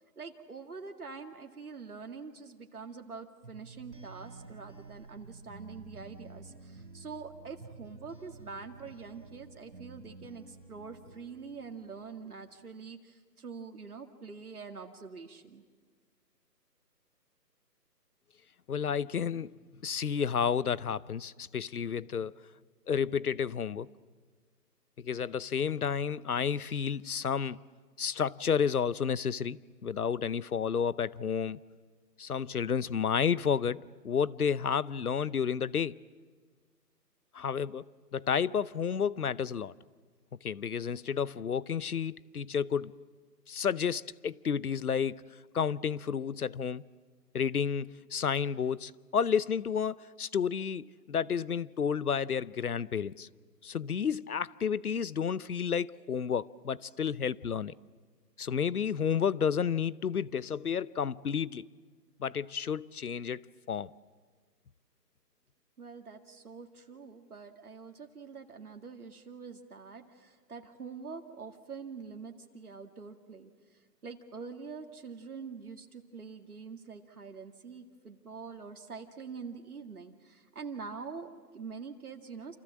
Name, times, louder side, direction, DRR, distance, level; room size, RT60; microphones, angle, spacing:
voice 1, 0.2-15.6 65.8-73.5 74.0-82.6, right 5 dB, 60° right, 2.0 m, -45 dB
sound 1, 3.4-12.1, right 3 dB, 80° right, 3.5 m, -51 dB
voice 2, 18.7-19.5 19.8-22.3 22.9-23.9 25.0-27.6 28.0-31.6 32.2-36.0 37.3-37.9 38.1-39.7 40.4-42.9 43.5-46.8 47.3-53.3 53.6-57.7 58.4-61.7 62.2-63.4 63.7-63.9, left 7 dB, 60° left, 0.8 m, -31 dB
28.5 x 28.0 x 7.4 m
hypercardioid pair, 175°, 49 cm